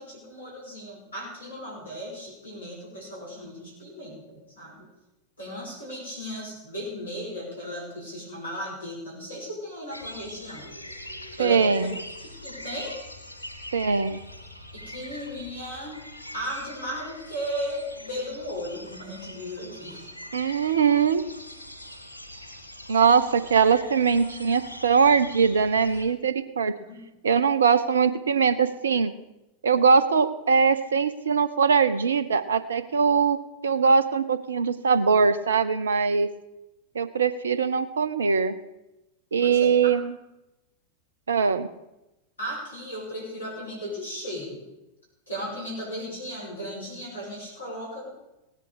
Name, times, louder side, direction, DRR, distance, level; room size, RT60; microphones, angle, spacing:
voice 1, 0.0-4.9 5.4-10.7 11.4-11.9 12.2-12.9 14.7-16.0 16.3-20.1 20.6-20.7 26.8-27.0 39.4-39.7 42.4-44.6 45.3-48.1, equal, 75° left, -3 dB, 6.1 m, -36 dB
sound 1, 9.9-26.1, left 1 dB, 90° right, 2.3 m, -43 dB
voice 2, 11.4-11.9 13.7-14.2 20.3-21.2 22.9-26.7 27.2-29.1 29.6-33.4 33.6-36.3 36.9-38.6 39.3-40.1 41.3-41.7, right 6 dB, 70° right, 13 dB, 0.8 m, -21 dB
17.5 x 10.5 x 4.9 m, 0.95 s
figure-of-eight pair, 90°, 0 cm